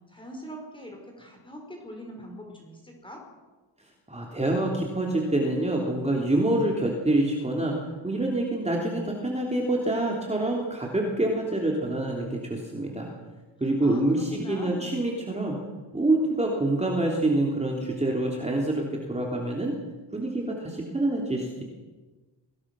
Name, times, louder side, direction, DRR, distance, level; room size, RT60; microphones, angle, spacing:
voice 1, 0.1-3.2 13.8-15.1, equal, 10° left, 1 dB, 5.3 m, -42 dB
voice 2, 4.1-7.8 8.0-13.1 13.6-15.6 15.9-19.8 20.1-21.6, right 1 dB, 15° right, -1 dB, 3.2 m, -26 dB
24.5 x 18.0 x 6.3 m, 1.3 s
cardioid pair, 115°, 44 cm